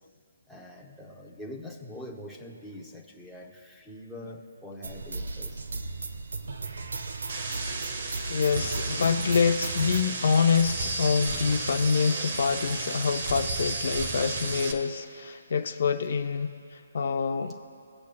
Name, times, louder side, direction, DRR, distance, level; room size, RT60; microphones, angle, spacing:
voice 1, 0.5-5.6, left 1 dB, ahead, -2 dB, 0.6 m, -44 dB
sound 1, 4.8-10.0, right 3 dB, 80° right, 0.7 m, -35 dB
sound 2, 7.3-14.7, right 3 dB, 40° right, 0.9 m, -33 dB
voice 2, 8.3-17.5, left 6 dB, 45° left, 8 dB, 0.5 m, -26 dB
18.0 x 8.5 x 2.2 m, 2.4 s
hypercardioid pair, 180°, 0 cm